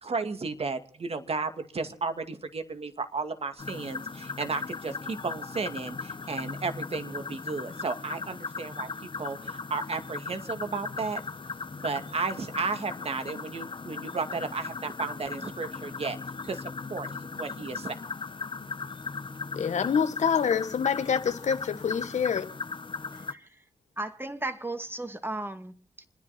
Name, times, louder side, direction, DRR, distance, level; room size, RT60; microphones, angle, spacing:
voice 1, 0.0-8.9 9.2-11.2 11.8-16.2 16.4-16.6 16.9-17.1 17.3-18.0, right 4 dB, 55° right, 2.3 m, -33 dB
sound 1, 3.6-23.3, left 4 dB, 40° left, 1.4 m, -38 dB
voice 2, 19.5-22.5, left 7 dB, 70° left, 1.6 m, -26 dB
voice 3, 24.0-26.1, right 2 dB, 15° right, 2.4 m, -35 dB
29.0 x 10.5 x 4.4 m
supercardioid pair, 45°, 12 cm